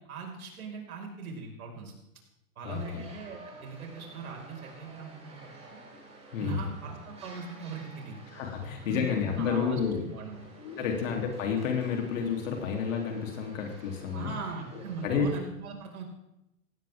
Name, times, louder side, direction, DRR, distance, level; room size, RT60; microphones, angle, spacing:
voice 1, 0.0-1.9 2.6-5.8 6.4-8.2 8.8-9.8 10.1-10.4 10.8-11.0 14.1-16.0, right 5 dB, 75° right, 1 dB, 5.8 m, -40 dB
voice 2, 2.6-3.0 6.3-6.6 8.3-10.0 10.6-14.3 15.0-15.3, left 6 dB, 60° left, 2 dB, 3.5 m, -30 dB
sound 1, 2.7-15.1, right 2 dB, 15° right, 4.7 m, -52 dB
19.5 x 16.5 x 3.7 m, 0.86 s
hypercardioid pair, 130°, 44 cm